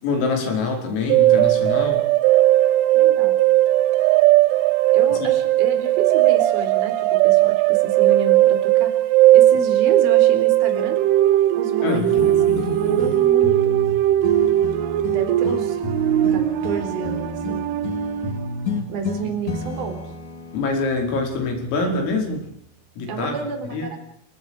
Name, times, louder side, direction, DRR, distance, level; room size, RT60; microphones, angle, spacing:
voice 1, 0.0-2.0 5.2-5.3 11.8-12.1 19.2-19.3 20.5-22.5 23.0-23.4 23.7-23.9, left 3 dB, 80° left, 2 dB, 7.7 m, -25 dB
sound 1, 1.1-18.5, right 14 dB, 75° right, 3.5 m, -18 dB
voice 2, 2.9-3.4 4.9-11.0 11.5-13.8 15.1-15.8 16.3-17.9 18.9-20.1 23.1-24.0, right 5 dB, 50° right, 6 dB, 5.5 m, -30 dB
sound 2, 11.8-22.4, left 3 dB, 40° left, 3.3 m, -31 dB
29.5 x 21.0 x 4.9 m, 0.68 s
omnidirectional pair, 5.9 m